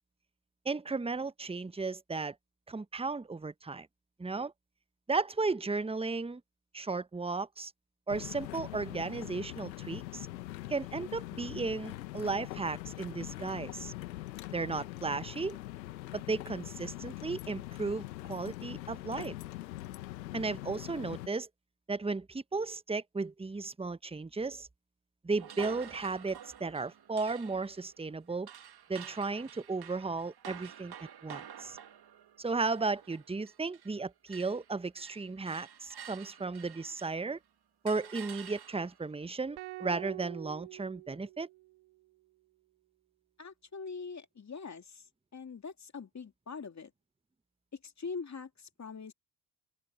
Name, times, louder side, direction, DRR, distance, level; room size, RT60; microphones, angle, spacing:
voice 1, 0.6-2.3 2.7-3.9 4.2-4.5 5.1-6.4 6.7-7.7 8.1-10.3 10.7-13.9 14.5-15.6 16.1-19.3 20.3-21.5 21.9-24.7 25.2-28.5 28.9-31.8 32.4-37.4 37.8-41.5, right 3 dB, 10° right, 1.1 m, -35 dB
sound 1, 8.1-21.3, left 16 dB, 85° left, 1.5 m, -43 dB
sound 2, 25.4-34.0 34.3-37.3 37.9-39.1, right 9 dB, 50° right, 2.3 m, -50 dB
sound 3, 39.6-41.9, right 21 dB, 70° right, 2.9 m, -46 dB
voice 2, 43.4-45.0 45.3-46.9 47.8-49.1, left 5 dB, 35° left, 2.8 m, -43 dB
open air
hypercardioid pair, 45°, 50 cm